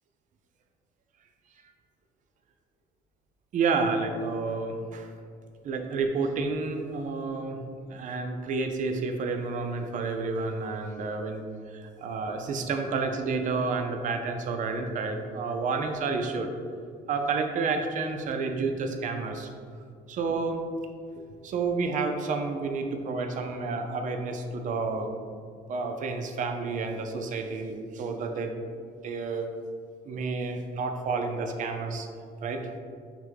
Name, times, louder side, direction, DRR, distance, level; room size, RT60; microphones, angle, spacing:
voice 1, 3.5-5.1 5.6-7.6 7.9-16.5 17.1-19.5 20.1-20.6 21.4-25.2 25.7-29.5 30.0-32.1 32.4-32.6, right 4 dB, 50° right, 5 dB, 0.5 m, -30 dB
5.6 x 2.2 x 3.8 m, 2.2 s
cardioid pair, 110°, 17 cm